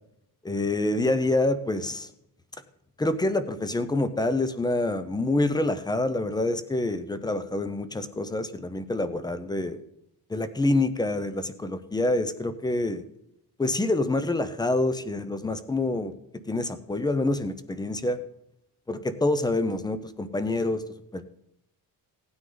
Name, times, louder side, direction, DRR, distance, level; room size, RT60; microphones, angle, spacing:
voice 1, 0.4-2.1 3.0-9.8 10.3-13.0 13.6-16.1 16.5-18.2 18.9-20.8 21.1-21.2, left 2 dB, 10° left, 12 dB, 0.6 m, -26 dB
17.0 x 9.6 x 3.9 m, 0.81 s
cardioid pair, 170°, 38 cm